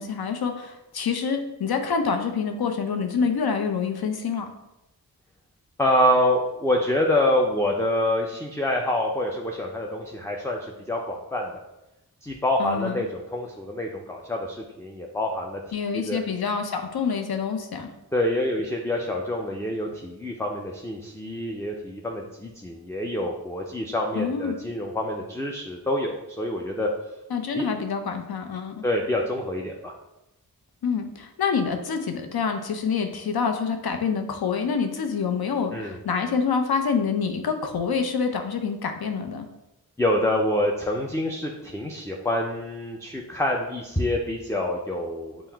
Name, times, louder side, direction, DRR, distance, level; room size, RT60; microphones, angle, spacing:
voice 1, 0.0-4.5 12.6-13.0 15.7-17.9 24.2-24.6 27.3-28.8 30.8-39.5, left 5 dB, 70° left, 5 dB, 0.6 m, -27 dB
voice 2, 5.8-11.6 12.2-15.6 15.9-16.2 18.1-26.9 27.5-27.7 28.8-29.9 35.7-36.0 40.0-45.5, left 1 dB, 5° left, 0 dB, 0.5 m, -26 dB
5.6 x 2.1 x 4.5 m, 0.93 s
cardioid pair, 40°, 39 cm